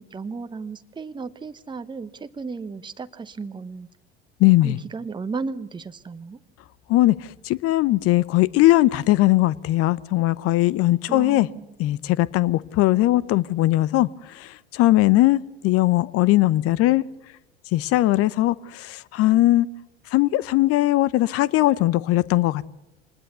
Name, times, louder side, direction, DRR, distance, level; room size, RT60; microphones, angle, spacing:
voice 1, 0.0-3.9 4.5-6.4 11.1-11.7, right 4 dB, 15° right, 11 dB, 1.0 m, -34 dB
voice 2, 4.4-4.8 6.9-7.1 7.4-11.5 11.8-17.0 17.7-19.7 20.1-22.7, left 16 dB, 45° left, 21 dB, 0.9 m, -19 dB
25.0 x 20.0 x 6.9 m, 0.91 s
figure-of-eight pair, 70°, 31 cm